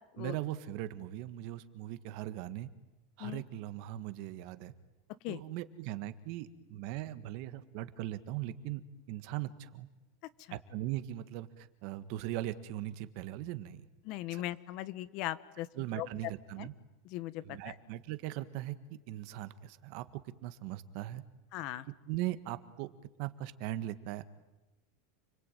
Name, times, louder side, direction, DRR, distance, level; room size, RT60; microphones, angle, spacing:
voice 1, 0.2-2.7 3.2-4.7 5.3-8.8 9.1-9.9 10.5-13.9 14.3-14.4 15.7-16.7 17.4-21.2 22.1-22.9 23.2-24.3, right 14 dB, 55° right, 12 dB, 1.7 m, -39 dB
voice 2, 14.1-15.7 16.0-16.1 16.6-16.7 17.1-17.7 21.5-21.8, left 15 dB, 50° left, 16 dB, 1.2 m, -38 dB
29.5 x 21.5 x 9.2 m, 1.0 s
supercardioid pair, 145°, 0 cm